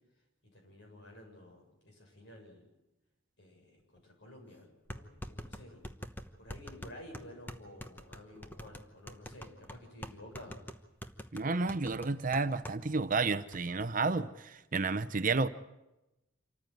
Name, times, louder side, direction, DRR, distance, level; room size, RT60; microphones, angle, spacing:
voice 1, 0.5-2.7 3.4-5.8 6.4-10.6, left 1 dB, 60° left, 1 dB, 7.4 m, -52 dB
sound 1, 4.0-4.1 4.9-12.8 13.1-13.2 13.5-13.9, equal, 10° left, 1.0 m, -45 dB
voice 2, 11.3-15.5, right 3 dB, 40° right, 12 dB, 0.7 m, -31 dB
27.0 x 14.5 x 9.3 m, 0.97 s
head